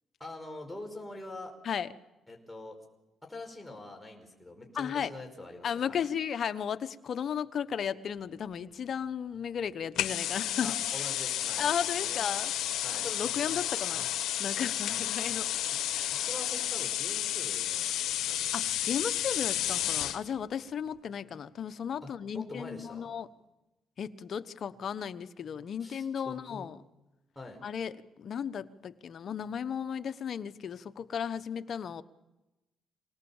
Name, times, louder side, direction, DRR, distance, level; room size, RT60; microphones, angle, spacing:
voice 1, 0.2-1.6 2.3-2.8 3.2-6.1 10.6-11.7 12.0-12.2 12.8-13.1 16.1-18.5 22.3-23.1 25.8-26.7 27.3-27.6, left 2 dB, 10° left, 1 dB, 5.1 m, -44 dB
voice 2, 4.7-5.1 5.6-10.7 11.6-12.5 13.0-14.1 14.4-15.5 15.9-16.1 18.5-23.3 24.0-26.8 27.6-32.0, left 8 dB, 55° left, 11 dB, 1.1 m, -35 dB
sound 1, 10.0-20.2, left 12 dB, 80° left, 1.2 m, -32 dB
26.5 x 19.0 x 7.2 m, 1.0 s
cardioid pair, 90°, 0 cm